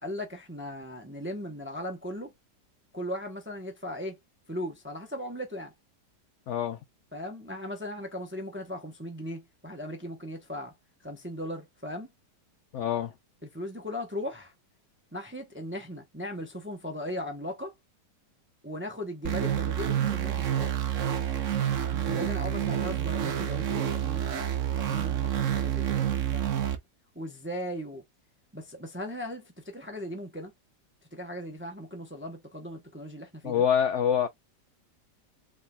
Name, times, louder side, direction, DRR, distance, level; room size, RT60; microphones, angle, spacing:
voice 1, 0.0-2.3 2.9-4.2 4.5-5.7 7.1-10.7 11.0-12.1 13.5-14.5 15.1-17.7 18.6-20.7 21.9-26.5 27.1-28.0 28.5-30.5 31.1-33.6, left 1 dB, 10° right, 0.6 m, -38 dB
voice 2, 6.5-6.8 12.7-13.1 33.4-34.3, left 8 dB, 80° left, 0.6 m, -25 dB
sound 1, 19.2-26.8, right 10 dB, 55° right, 1.0 m, -28 dB
4.2 x 3.8 x 2.2 m
omnidirectional pair, 1.9 m